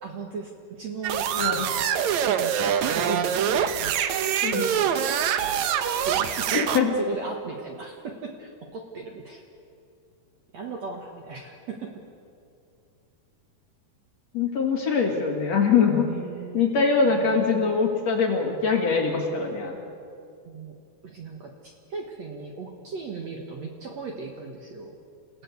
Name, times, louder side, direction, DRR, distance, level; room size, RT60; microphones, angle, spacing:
voice 1, 0.0-1.8 2.4-3.7 4.5-5.8 6.0-9.4 10.5-11.9 16.0-16.6 17.1-17.8 20.5-20.8 21.0-24.9, right 4 dB, 55° right, 2 dB, 2.1 m, -37 dB
sound 1, 1.0-6.8, right 9 dB, 85° right, 1.6 m, -25 dB
voice 2, 6.5-6.9 14.3-16.1 16.5-19.8, left 5 dB, 45° left, 1 dB, 3.1 m, -23 dB
28.0 x 16.5 x 8.3 m, 2.5 s
omnidirectional pair, 4.6 m